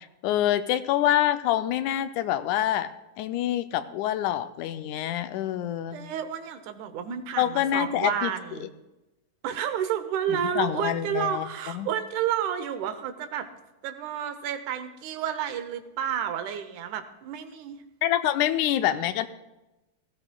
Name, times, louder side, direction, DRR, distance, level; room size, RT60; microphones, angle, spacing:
voice 1, 0.2-2.9 3.2-6.0 7.4-8.3 10.3-11.9 18.0-19.3, left 12 dB, 90° left, 10 dB, 2.0 m, -26 dB
voice 2, 5.9-8.7 9.4-13.5 13.8-17.8, right 9 dB, 85° right, 10 dB, 2.3 m, -31 dB
17.0 x 15.0 x 2.2 m, 1.0 s
omnidirectional pair, 3.4 m